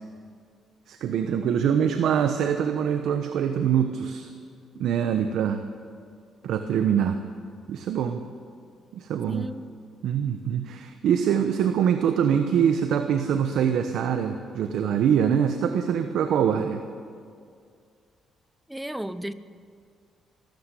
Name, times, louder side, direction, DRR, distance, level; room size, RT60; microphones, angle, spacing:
voice 1, 0.9-4.3 4.7-5.6 6.4-7.2 7.7-8.2 8.9-9.5 10.0-16.8, right 8 dB, 80° right, 7 dB, 1.1 m, -24 dB
voice 2, 9.3-9.7 18.7-19.3, right 1 dB, 5° right, 14 dB, 0.8 m, -34 dB
23.0 x 13.5 x 8.4 m, 2.2 s
cardioid pair, 90°, 0 cm